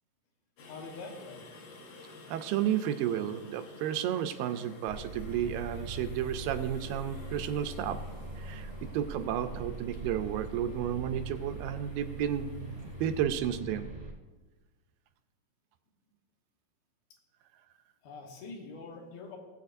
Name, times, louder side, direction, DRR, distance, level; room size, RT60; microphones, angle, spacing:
voice 1, 0.6-1.5 18.0-19.4, left 3 dB, 90° left, 1 dB, 3.3 m, -44 dB
sound 1, 0.6-13.2, left 2 dB, 65° left, 2.6 m, -52 dB
voice 2, 2.3-8.0 8.4-13.9, right 10 dB, 80° right, 9 dB, 2.2 m, -32 dB
sound 2, 4.9-14.1, right 2 dB, 35° right, 1.0 m, -42 dB
19.5 x 7.8 x 2.6 m, 1.2 s
omnidirectional pair, 4.2 m